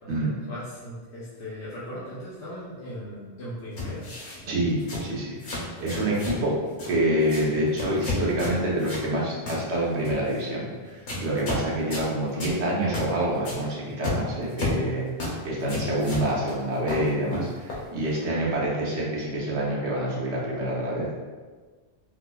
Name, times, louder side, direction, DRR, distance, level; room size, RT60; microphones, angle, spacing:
voice 1, 0.0-4.1, equal, 80° left, -9 dB, 1.0 m, -38 dB
sound 1, 3.8-4.4 4.8-5.1 5.4-6.4 6.7-7.0 7.2-7.5 7.8-9.1 9.5-9.6 10.0-10.4 11.1-11.6 11.9-12.1 12.4-12.6 12.9-13.1 13.4-13.6 14.0-14.8 15.2-15.4 15.6-16.6 16.9-17.9, left 2 dB, 50° left, 0.8 m, -32 dB
voice 2, 4.4-6.6 6.9-15.0 15.4-21.1, right 1 dB, 85° right, -4 dB, 1.1 m, -27 dB
4.6 x 2.1 x 2.2 m, 1.4 s
omnidirectional pair, 1.1 m